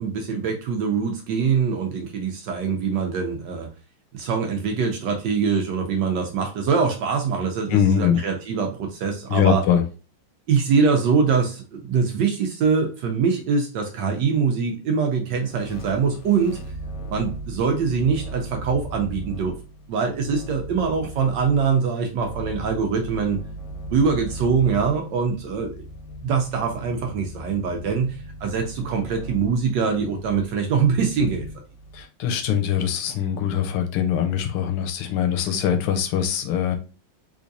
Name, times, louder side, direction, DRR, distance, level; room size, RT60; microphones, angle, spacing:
voice 1, 0.0-3.7 4.1-9.6 10.5-16.6 17.1-19.6 19.9-23.4 23.9-25.8 26.2-31.4, right 5 dB, 70° right, 3 dB, 1.1 m, -23 dB
voice 2, 7.7-8.2 9.3-9.8 31.9-36.8, left 8 dB, 90° left, 6 dB, 1.5 m, -22 dB
sound 1, 15.4-32.0, right 1 dB, 75° left, 1.4 m, -37 dB
3.6 x 3.2 x 2.6 m, 0.34 s
omnidirectional pair, 2.3 m